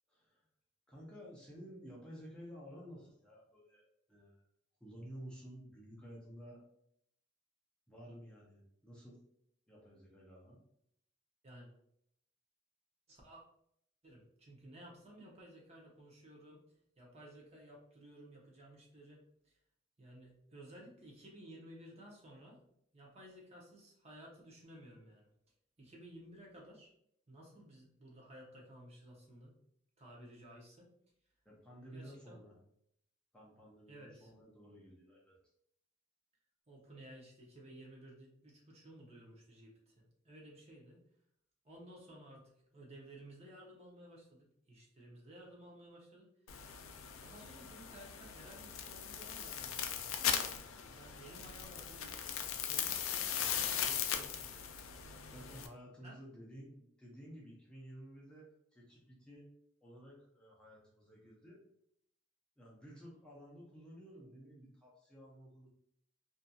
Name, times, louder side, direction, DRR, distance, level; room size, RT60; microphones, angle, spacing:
voice 1, 0.1-0.5 0.9-4.4 4.8-6.6 7.9-9.2 9.7-10.6 31.4-32.5 33.3-35.4 55.1-59.5 59.8-61.6 62.6-65.7, equal, 5° left, -5 dB, 0.5 m, -53 dB
voice 2, 13.1-13.4 14.0-16.6 17.0-19.6 20.0-22.6 22.9-25.3 25.8-26.9 27.3-29.5 30.0-30.9 31.9-32.4 33.9-34.3 36.7-41.0 41.6-46.3 47.2-50.3 50.9-54.7 56.0-56.2, right 1 dB, 30° right, -3 dB, 0.7 m, -56 dB
sound 1, 46.5-55.7, left 8 dB, 80° left, 0.3 m, -39 dB
2.6 x 2.6 x 2.3 m, 0.72 s
head